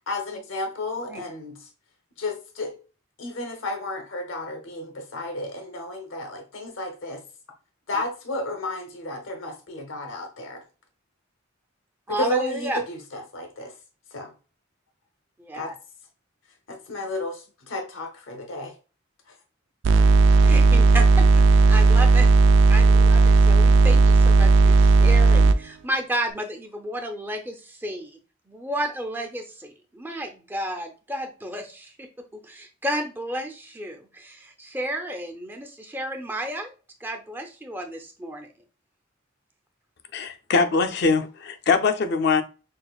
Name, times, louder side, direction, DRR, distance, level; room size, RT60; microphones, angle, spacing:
voice 1, 0.1-1.7 2.2-2.7 3.2-7.2 7.9-10.6 12.1-13.7 14.1-14.3 15.5-15.7 16.7-18.7, left 2 dB, 75° left, 0.8 m, -32 dB
voice 2, 12.1-12.8 15.4-15.7 20.4-22.3 22.7-28.2 28.5-36.7 37.0-38.5, right 1 dB, 10° right, 0.6 m, -32 dB
sound 1, 19.8-25.6, right 3 dB, 65° right, 0.3 m, -15 dB
voice 3, 40.1-42.4, left 4 dB, 55° left, 0.5 m, -22 dB
6.3 x 2.5 x 2.3 m
head